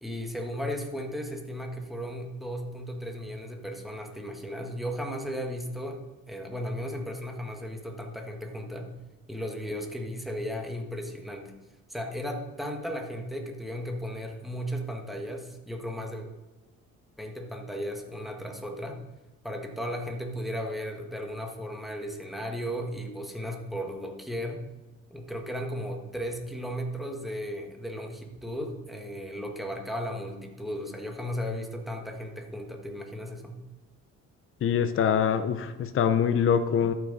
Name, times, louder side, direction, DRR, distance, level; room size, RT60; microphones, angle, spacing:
voice 1, 0.0-6.0 6.3-8.9 9.3-11.5 11.9-16.3 17.2-19.0 19.4-24.6 25.1-33.6, equal, ahead, 2 dB, 1.5 m, -35 dB
voice 2, 34.6-36.9, left 8 dB, 45° left, 10 dB, 0.7 m, -24 dB
13.5 x 6.2 x 4.0 m, 1.2 s
cardioid pair, 90°, 30 cm